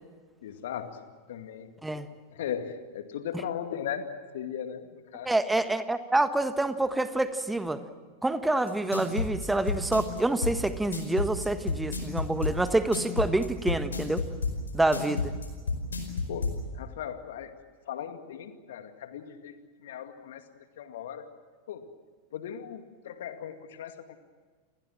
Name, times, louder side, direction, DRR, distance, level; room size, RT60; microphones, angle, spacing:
voice 1, 0.4-1.0 1.3-1.7 2.3-5.3 16.3-17.6 17.9-19.5 19.8-20.5 20.8-21.3 21.7-21.9 22.3-24.2, left 9 dB, 60° left, 8 dB, 2.2 m, -38 dB
voice 2, 5.2-7.8 8.2-14.2 14.7-15.3, right 2 dB, 5° right, 11 dB, 1.5 m, -27 dB
sound 1, 8.7-16.6, left 4 dB, 75° left, 5.1 m, -30 dB
29.5 x 21.0 x 7.6 m, 1.5 s
figure-of-eight pair, 90°, 0 cm